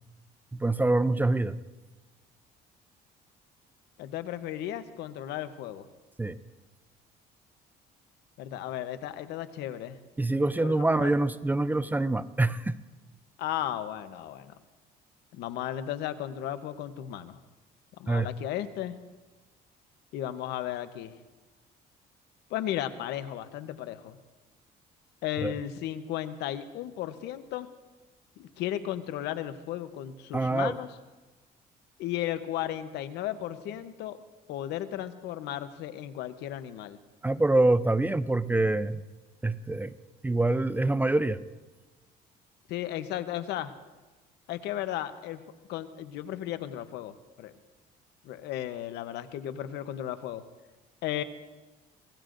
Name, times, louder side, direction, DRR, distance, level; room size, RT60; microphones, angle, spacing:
voice 1, 0.5-1.6 6.2-6.4 10.2-12.8 18.1-18.3 25.4-25.5 30.3-30.7 37.2-39.0 39.4-39.9 40.2-41.4, right 2 dB, 10° right, 14 dB, 0.5 m, -25 dB
voice 2, 4.0-5.9 8.4-10.0 10.6-11.1 13.4-14.6 15.3-17.4 18.0-19.0 20.1-21.2 22.5-24.2 25.2-27.7 28.4-30.9 32.0-34.2 34.5-37.0 42.7-43.7 44.5-45.4 45.7-47.5 48.2-50.4 51.0-51.2, left 12 dB, 85° left, 11 dB, 0.9 m, -35 dB
25.0 x 19.0 x 2.6 m, 1.2 s
cardioid pair, 110°, 17 cm